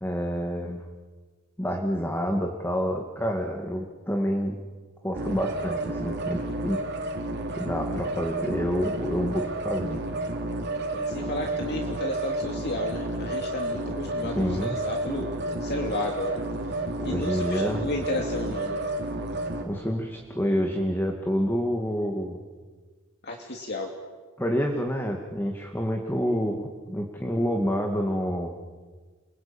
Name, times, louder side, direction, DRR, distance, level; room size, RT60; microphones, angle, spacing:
voice 1, 0.0-0.8 1.6-4.6 5.0-6.8 7.6-10.0 14.2-14.8 17.0-17.9 19.7-22.4 24.4-28.5, equal, 10° left, 2 dB, 2.3 m, -28 dB
sound 1, 5.1-19.6, right 2 dB, 55° right, 3.7 m, -31 dB
voice 2, 10.9-15.3 15.6-16.4 17.0-18.8 23.2-23.9, left 2 dB, 50° left, 1 dB, 2.9 m, -33 dB
29.5 x 22.0 x 9.0 m, 1.4 s
head